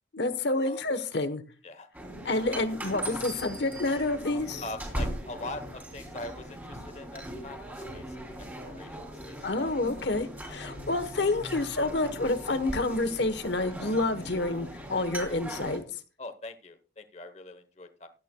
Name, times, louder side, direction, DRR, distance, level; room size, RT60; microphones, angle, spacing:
voice 1, 0.1-1.4 2.2-4.6 9.4-15.8, left 2 dB, 70° left, 11 dB, 1.1 m, -28 dB
sound 1, 1.9-15.8, right 1 dB, 10° right, 3.1 m, -39 dB
voice 2, 4.6-8.2 8.7-9.7 10.5-10.6 16.2-18.1, left 2 dB, 35° left, 10 dB, 1.0 m, -42 dB
15.5 x 11.5 x 2.3 m, 0.36 s
head